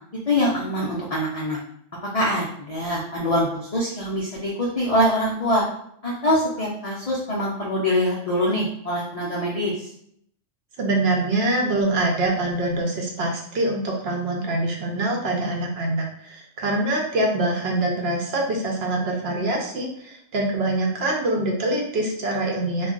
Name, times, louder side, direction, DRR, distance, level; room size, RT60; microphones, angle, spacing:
voice 1, 0.3-1.6 2.1-5.6 6.0-9.9, equal, 60° left, -4 dB, 0.3 m, -24 dB
voice 2, 10.8-22.9, right 2 dB, 60° right, 0 dB, 0.7 m, -24 dB
2.4 x 2.2 x 3.7 m, 0.68 s
omnidirectional pair, 1.3 m